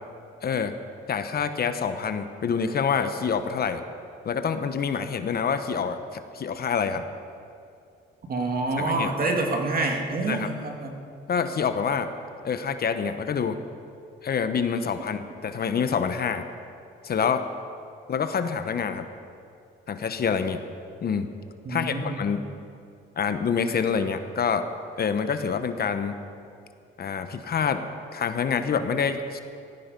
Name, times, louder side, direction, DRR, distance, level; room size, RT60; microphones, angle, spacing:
voice 1, 0.4-0.7 1.1-3.8 4.2-7.0 8.8-9.1 10.3-10.5 11.3-12.1 12.4-13.6 14.2-16.4 17.0-17.5 18.1-19.1 19.9-20.6 21.0-21.3 21.7-22.4 23.2-24.7 25.0-26.2 27.0-27.8 28.1-29.4, left 6 dB, 50° left, 9 dB, 1.1 m, -26 dB
voice 2, 8.3-10.9 21.6-22.2, right 2 dB, 45° right, 2 dB, 2.6 m, -27 dB
17.5 x 15.0 x 5.4 m, 2.4 s
cardioid pair, 90°, 20 cm